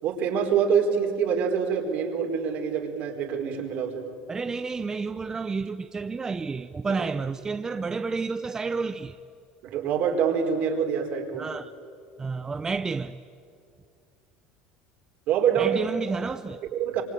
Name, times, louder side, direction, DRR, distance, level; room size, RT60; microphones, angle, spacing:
voice 1, 0.0-4.0 6.9-7.0 9.6-11.5 15.3-15.8 16.7-17.0, right 7 dB, 60° right, 4.6 m, -25 dB
voice 2, 4.3-9.2 11.3-11.7 12.2-13.2 15.6-16.6, right 4 dB, 20° right, 0.7 m, -30 dB
26.5 x 24.0 x 9.2 m
supercardioid pair, 100°, 3 cm